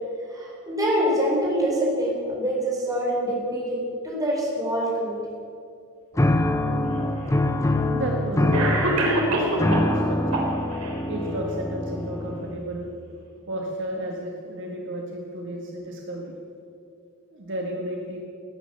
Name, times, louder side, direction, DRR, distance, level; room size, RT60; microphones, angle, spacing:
voice 1, 0.3-5.2 6.1-6.3, equal, 15° right, -3 dB, 4.7 m, -25 dB
sound 1, 6.2-12.6, left 1 dB, 15° left, 0.8 m, -24 dB
Cough, 6.8-6.9 7.9-8.0 8.5-10.0 10.3-10.9, right 1 dB, 80° right, 3.6 m, -24 dB
voice 2, 7.9-10.4 11.1-12.9 13.5-16.3 17.3-18.2, right 1 dB, 60° right, 0 dB, 1.8 m, -33 dB
19.0 x 10.0 x 6.8 m, 2.5 s
head